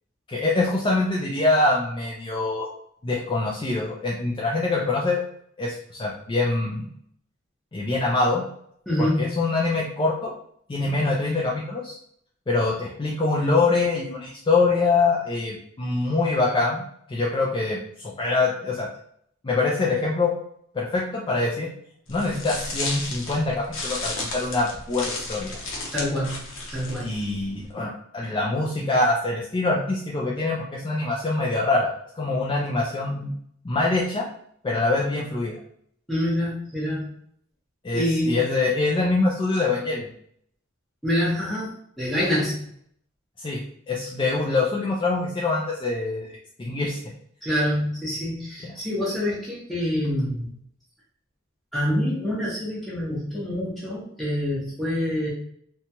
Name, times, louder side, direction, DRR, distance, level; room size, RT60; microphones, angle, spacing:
voice 1, 0.3-2.7 3.0-5.2 5.6-6.9 7.7-8.4 9.0-10.3 10.7-12.0 12.5-16.8 17.1-18.9 19.4-20.3 20.7-21.7 22.1-25.6 27.0-33.3 33.6-34.3 34.6-35.6 37.8-40.1 43.4-46.3 46.6-47.0 48.6-48.7, left 3 dB, 25° left, -4 dB, 0.4 m, -24 dB
voice 2, 8.9-9.3 10.8-11.0 25.9-26.4 26.7-27.1 36.1-37.1 37.9-38.4 41.0-42.6 47.4-50.5 51.7-55.3, left 1 dB, ahead, -7 dB, 0.7 m, -26 dB
sound 1, 22.1-27.7, left 2 dB, 65° left, 0.7 m, -33 dB
2.8 x 2.2 x 2.8 m, 0.67 s
head